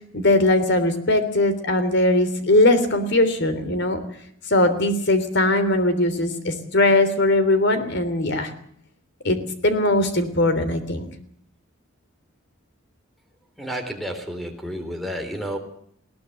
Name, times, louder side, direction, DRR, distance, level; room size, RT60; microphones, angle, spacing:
voice 1, 0.1-4.0 4.5-8.5 9.2-9.4 9.6-11.1, left 2 dB, 55° left, 10 dB, 3.4 m, -20 dB
voice 2, 13.6-15.6, equal, ahead, 6 dB, 3.8 m, -31 dB
20.5 x 17.5 x 8.0 m, 0.67 s
head